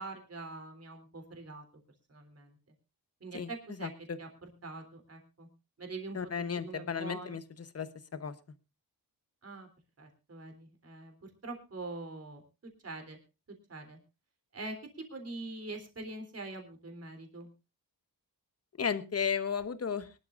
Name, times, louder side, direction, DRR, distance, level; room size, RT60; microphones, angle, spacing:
voice 1, 0.0-1.6 2.1-2.6 3.2-3.9 4.2-4.3 4.6-5.5 5.8-6.3 6.6-7.4 9.4-9.7 10.0-11.1 11.4-12.4 12.8-13.2 13.7-14.0 14.5-14.8 15.1-17.5, right 3 dB, 40° right, 5 dB, 3.4 m, -43 dB
voice 2, 3.8-4.2 6.1-7.4 7.7-8.3 18.8-20.2, left 6 dB, 40° left, 12 dB, 1.1 m, -34 dB
23.5 x 12.0 x 2.5 m, 0.28 s
wide cardioid pair, 160°, 39 cm